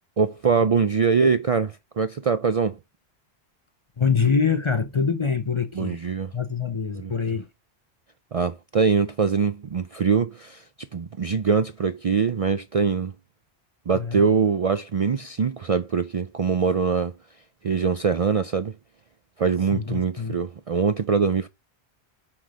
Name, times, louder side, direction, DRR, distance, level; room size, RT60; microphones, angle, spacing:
voice 1, 0.2-2.8 5.8-6.3 6.9-7.1 8.3-10.6 10.9-13.1 13.9-17.1 17.6-18.7 19.4-21.5, right 5 dB, 50° right, 0.4 m, -23 dB
voice 2, 4.0-6.0 6.3-7.5 13.9-14.3 19.7-20.4, left 6 dB, 35° left, 0.5 m, -24 dB
5.8 x 4.7 x 6.3 m
omnidirectional pair, 1.1 m